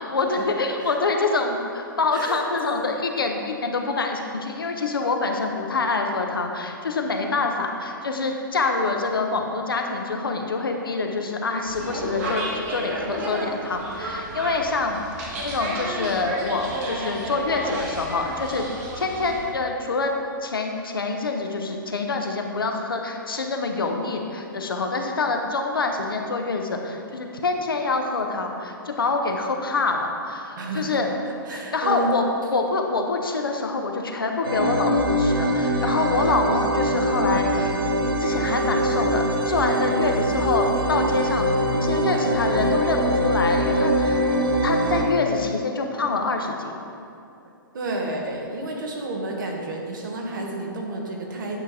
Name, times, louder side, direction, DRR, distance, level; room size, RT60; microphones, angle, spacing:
voice 1, 0.0-18.7 18.9-20.1 20.4-31.1 31.5-37.8 38.2-41.5 41.8-44.2 44.6-46.7, left 3 dB, 80° left, 3 dB, 0.7 m, -26 dB
voice 2, 2.1-2.9 30.6-31.0 31.4-32.2 41.2-41.3 42.1-42.2 42.6-42.7 47.7-51.6, right 2 dB, 60° right, 0 dB, 1.2 m, -31 dB
sound 1, 11.7-19.5, right 1 dB, 45° right, 1.5 m, -32 dB
sound 2, 34.4-45.1, equal, 85° right, 0.7 m, -23 dB
9.0 x 4.0 x 3.6 m, 2.6 s
figure-of-eight pair, 120°, 12 cm